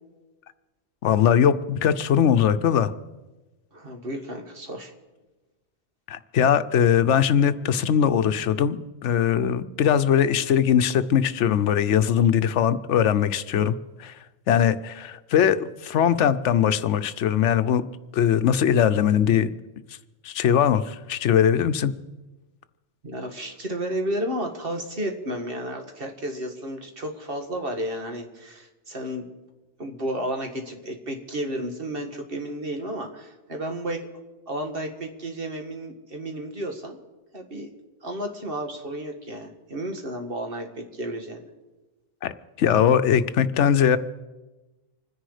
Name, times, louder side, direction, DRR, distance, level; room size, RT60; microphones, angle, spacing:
voice 1, 1.0-2.9 6.1-13.7 14.0-14.1 14.5-17.8 18.1-19.5 20.2-21.9 42.2-42.3 42.6-44.0, left 8 dB, 85° left, 12 dB, 1.0 m, -21 dB
voice 2, 3.7-4.9 23.0-29.2 29.8-34.1 34.5-37.0 37.3-37.7 38.0-41.5, right 1 dB, 55° right, 4 dB, 2.0 m, -32 dB
26.0 x 10.5 x 4.9 m, 1.1 s
omnidirectional pair, 1.2 m